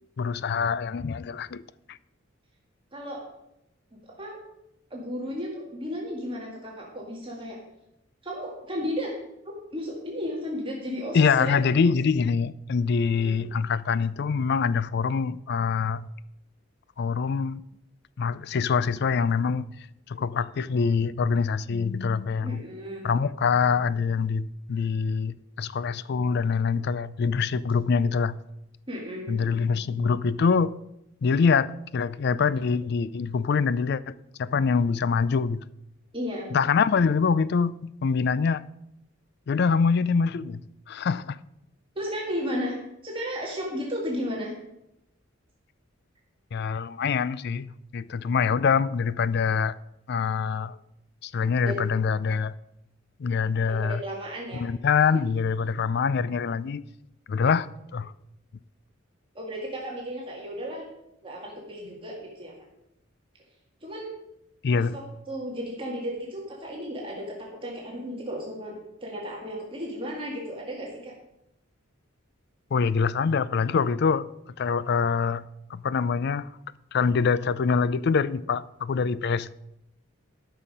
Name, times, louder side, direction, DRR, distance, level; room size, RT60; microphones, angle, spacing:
voice 1, 0.2-1.6 1.9-2.0 11.1-16.1 17.0-17.6 18.2-19.7 20.1-22.6 23.0-28.4 29.3-30.7 31.2-35.6 36.5-38.6 39.5-40.6 40.9-41.4 46.5-49.8 50.1-50.8 51.2-52.5 53.2-54.0 54.5-56.8 57.3-58.1 64.6-65.0 72.7-74.3 74.6-76.5 76.9-79.6, left 5 dB, 55° left, 0.4 m, -25 dB
voice 2, 2.9-3.2 4.0-4.4 4.9-7.6 8.2-9.1 9.7-11.6 13.1-13.4 22.4-23.0 28.9-29.5 36.1-36.5 42.0-42.8 43.0-44.5 51.6-51.8 53.6-54.6 59.3-60.9 61.2-62.7 63.8-64.1 64.7-68.8 69.0-71.1, equal, 25° right, 1.8 m, -34 dB
12.5 x 5.7 x 5.2 m
head